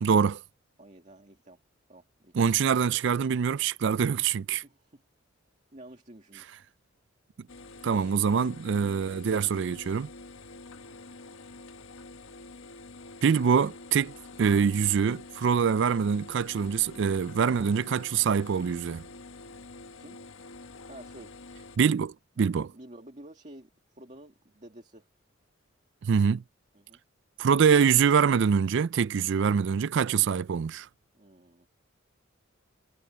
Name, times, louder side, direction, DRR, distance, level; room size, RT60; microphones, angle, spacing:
voice 1, 0.0-0.4 2.3-4.6 7.8-10.1 13.2-19.0 21.8-22.7 26.0-26.4 27.4-30.9, right 6 dB, 60° right, 0.4 m, -24 dB
voice 2, 0.8-1.6 1.9-2.4 4.6-5.0 5.7-6.6 19.9-20.2 20.9-21.3 22.4-25.1 26.7-27.0 31.1-31.7, right 1 dB, 35° right, 2.2 m, -50 dB
sound 1, 7.5-21.8, left 3 dB, 80° left, 1.4 m, -47 dB
head